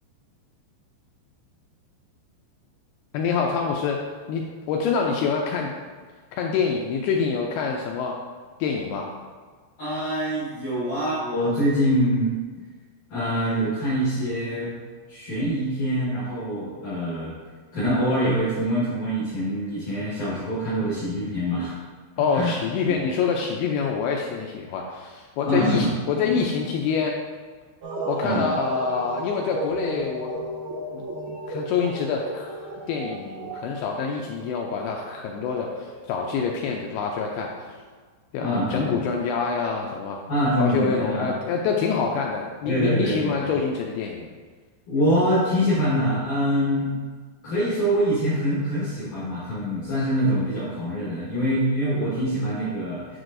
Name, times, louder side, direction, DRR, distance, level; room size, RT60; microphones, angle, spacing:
voice 1, 3.1-5.7 6.3-8.2 8.6-9.1 22.2-27.2 28.1-30.3 30.9-31.1 31.5-37.5 38.3-40.2 40.6-44.3, left 5 dB, 85° left, 0 dB, 2.3 m, -26 dB
voice 2, 9.8-12.3 13.1-14.7 15.1-17.3 17.7-21.7 22.3-22.6 22.9-23.0 25.5-25.9 26.3-26.4 28.2-28.5 38.4-39.1 40.3-41.3 42.7-43.5 44.9-46.9 47.4-53.2, equal, 60° left, -9 dB, 2.4 m, -24 dB
sound 1, 27.8-37.8, right 2 dB, 60° right, 2.1 m, -36 dB
7.6 x 6.3 x 2.6 m, 1.5 s
omnidirectional pair, 4.9 m